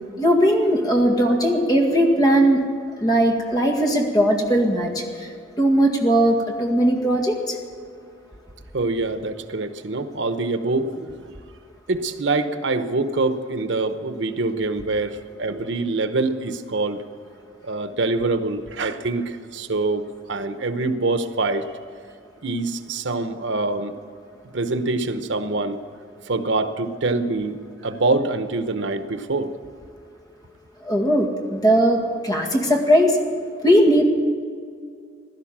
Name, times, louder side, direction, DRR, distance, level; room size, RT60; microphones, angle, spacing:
voice 1, 0.2-2.7 3.0-5.3 5.6-7.6 30.8-33.2 33.6-34.0, equal, 20° left, 1 dB, 1.9 m, -19 dB
voice 2, 8.7-11.3 11.9-17.0 17.7-20.0 20.3-21.7 22.4-23.9 24.5-25.8 26.3-27.6 27.8-29.5, right 3 dB, 85° right, 10 dB, 0.9 m, -25 dB
16.5 x 12.0 x 7.4 m, 2.2 s
head